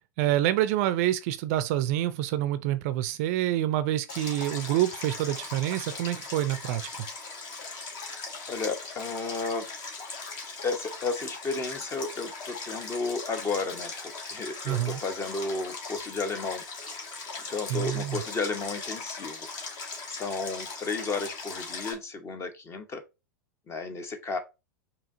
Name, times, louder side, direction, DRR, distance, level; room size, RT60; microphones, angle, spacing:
voice 1, 0.2-7.1 14.7-15.0 17.7-18.2, right 13 dB, 50° right, 0.4 m, -27 dB
Stream, 4.1-21.9, left 4 dB, 45° left, 1.3 m, -39 dB
voice 2, 8.5-9.7 10.6-16.6 17.5-19.5 20.1-23.0 23.7-24.4, left 4 dB, 25° left, 0.9 m, -33 dB
4.9 x 2.8 x 2.6 m
hypercardioid pair, 95°, 10 cm